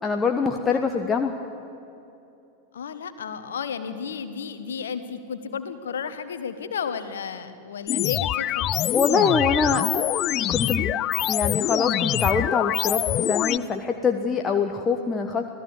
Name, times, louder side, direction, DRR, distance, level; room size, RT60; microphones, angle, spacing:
voice 1, 0.0-1.3 8.9-9.9 10.5-10.9 11.3-15.5, left 5 dB, 15° left, 4 dB, 1.2 m, -24 dB
voice 2, 2.7-8.7, left 6 dB, 65° left, 11 dB, 1.6 m, -33 dB
sound 1, 7.9-13.6, left 13 dB, 35° left, 0.5 m, -25 dB
27.0 x 17.5 x 8.1 m, 2.8 s
figure-of-eight pair, 90°, 0 cm